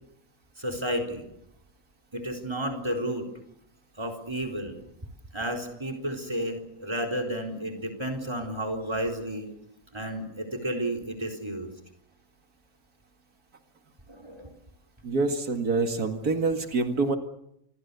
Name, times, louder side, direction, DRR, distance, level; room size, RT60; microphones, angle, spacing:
voice 1, 0.6-1.3 2.1-3.3 4.0-4.8 5.3-9.5 9.9-11.7 14.1-14.5, right 1 dB, 15° right, 6 dB, 4.2 m, -32 dB
voice 2, 15.0-17.2, right 3 dB, 90° right, 5 dB, 2.6 m, -26 dB
28.0 x 23.0 x 6.9 m, 0.78 s
omnidirectional pair, 1.5 m